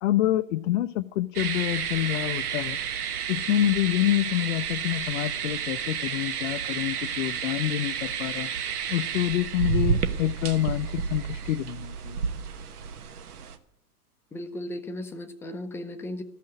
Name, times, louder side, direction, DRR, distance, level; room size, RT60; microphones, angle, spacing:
voice 1, 0.0-2.8 3.3-12.2, left 14 dB, 55° left, 8 dB, 0.6 m, -27 dB
sound 1, 1.3-13.6, right 7 dB, 70° right, 1.3 m, -31 dB
voice 2, 14.3-16.2, left 1 dB, 5° left, 6 dB, 0.6 m, -36 dB
14.0 x 5.8 x 9.6 m, 0.79 s
hypercardioid pair, 115°, 46 cm